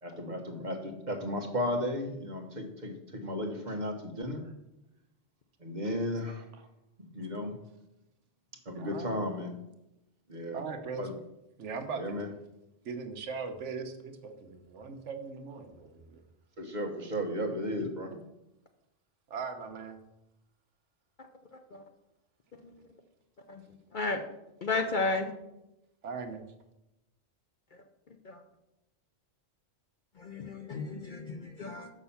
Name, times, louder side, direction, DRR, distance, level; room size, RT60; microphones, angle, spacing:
voice 1, 0.0-4.5 5.6-6.5 7.0-7.5 8.6-9.5 10.3-10.6 11.0-11.2 12.0-12.3 16.6-18.1, equal, 40° right, 1.1 m, -34 dB
voice 2, 8.8-9.2 10.5-11.1 11.6-12.2 12.8-16.2 19.3-20.0 26.0-26.4, right 5 dB, 70° right, 1.2 m, -39 dB
voice 3, 24.6-25.3 28.3-28.4 30.2-31.9, left 3 dB, 50° left, 0.7 m, -33 dB
6.1 x 5.6 x 7.0 m
omnidirectional pair, 1.3 m